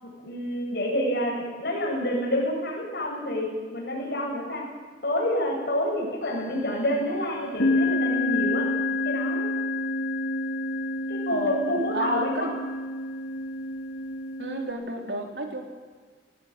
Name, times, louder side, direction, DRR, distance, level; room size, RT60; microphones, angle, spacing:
voice 1, 0.0-4.6 5.0-8.7 9.0-9.5 11.1-12.5, left 1 dB, 60° left, -1 dB, 7.8 m, -28 dB
sound 1, 6.2-6.7 7.6-14.7, left 2 dB, 90° left, 2.7 m, -28 dB
voice 2, 11.9-12.5 14.4-15.6, right 1 dB, 70° right, 3 dB, 3.5 m, -31 dB
19.0 x 18.5 x 9.1 m, 1.4 s
head